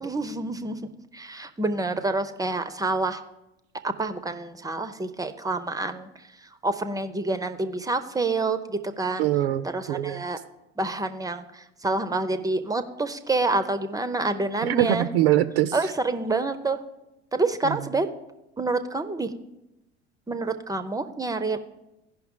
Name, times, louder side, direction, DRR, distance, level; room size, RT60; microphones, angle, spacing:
voice 1, 0.0-0.8 1.1-3.2 3.8-6.1 6.4-9.3 9.6-10.4 10.8-15.1 15.7-16.8 17.3-18.1 18.6-19.3 20.3-21.6, right 3 dB, 10° right, 11 dB, 0.5 m, -27 dB
voice 2, 9.2-10.2 14.6-15.7 17.6-17.8, right 12 dB, 60° right, 12 dB, 0.5 m, -23 dB
15.5 x 5.7 x 3.6 m, 0.92 s
figure-of-eight pair, 70°, 33 cm